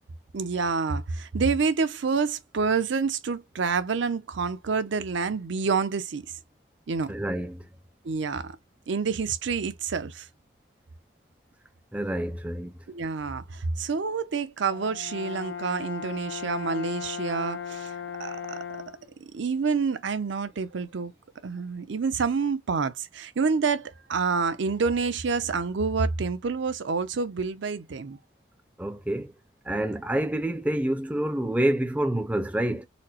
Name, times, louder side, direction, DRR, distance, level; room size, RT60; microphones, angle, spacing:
voice 1, 0.3-6.2 6.9-7.1 8.0-8.6 8.9-10.3 12.9-13.4 13.8-17.9 18.2-18.6 19.2-21.1 21.4-28.2, right 5 dB, 65° right, 0.5 m, -28 dB
voice 2, 7.1-7.7 11.9-12.7 28.8-29.3 29.7-32.9, right 1 dB, 5° right, 0.4 m, -27 dB
Brass instrument, 14.7-19.1, left 7 dB, 65° left, 0.4 m, -37 dB
4.2 x 2.0 x 2.9 m
head